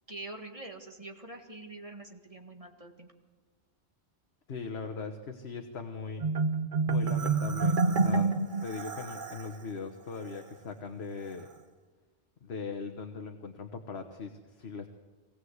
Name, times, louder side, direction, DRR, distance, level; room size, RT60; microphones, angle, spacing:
voice 1, 0.1-3.1, right 2 dB, 30° right, 3 dB, 1.9 m, -45 dB
voice 2, 4.5-6.2 6.8-11.5 12.4-14.9, left 4 dB, 65° left, 5 dB, 1.5 m, -40 dB
Marimba xylophone, 6.2-9.6, right 4 dB, 50° right, 1.3 m, -28 dB
24.0 x 19.0 x 8.1 m, 1.3 s
omnidirectional pair, 1.2 m